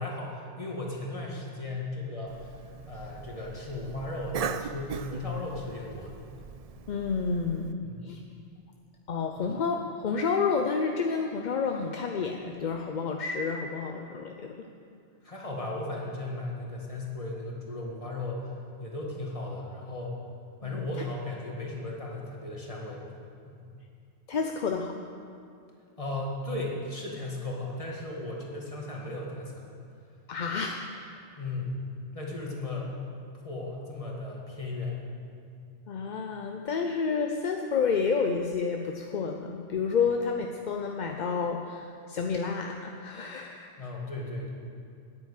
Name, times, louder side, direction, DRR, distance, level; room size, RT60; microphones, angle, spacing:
voice 1, 0.0-6.1 6.4-6.5 7.8-8.1 15.2-18.5 18.8-20.1 20.6-23.0 23.4-23.6 26.0-29.8 31.3-31.8 32.1-32.9 33.3-35.0 43.8-44.5, left 2 dB, 30° left, -2 dB, 2.0 m, -36 dB
Cough, 2.3-7.7, right 6 dB, 65° right, 0.3 m, -39 dB
voice 2, 6.9-8.2 9.1-14.7 20.6-20.8 24.3-25.0 30.3-30.8 35.9-43.7, left 5 dB, 50° left, 3 dB, 0.7 m, -30 dB
9.8 x 9.2 x 8.3 m, 2.4 s
omnidirectional pair, 1.2 m